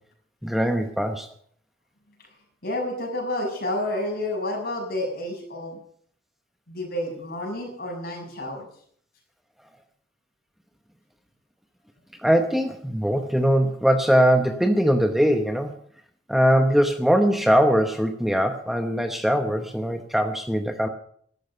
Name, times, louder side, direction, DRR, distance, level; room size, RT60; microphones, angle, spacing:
voice 1, 0.4-1.3 12.2-15.7 16.3-20.9, equal, ahead, 5 dB, 0.9 m, -21 dB
voice 2, 2.6-5.8 6.7-8.7, left 1 dB, 55° left, 1 dB, 6.5 m, -30 dB
14.0 x 12.0 x 6.7 m, 0.62 s
head